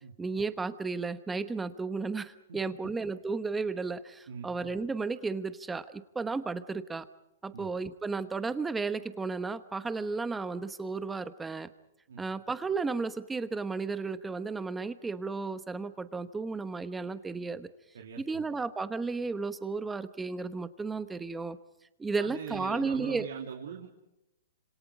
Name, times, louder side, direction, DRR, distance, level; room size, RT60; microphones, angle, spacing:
voice 1, 0.2-7.1 7.4-11.7 12.2-17.7 18.2-21.6 22.0-23.3, right 4 dB, 5° right, 12 dB, 1.0 m, -33 dB
voice 2, 17.9-18.4 22.2-23.9, right 7 dB, 80° right, 1 dB, 3.0 m, -41 dB
29.5 x 27.0 x 5.0 m, 0.88 s
hypercardioid pair, 165°, 0 cm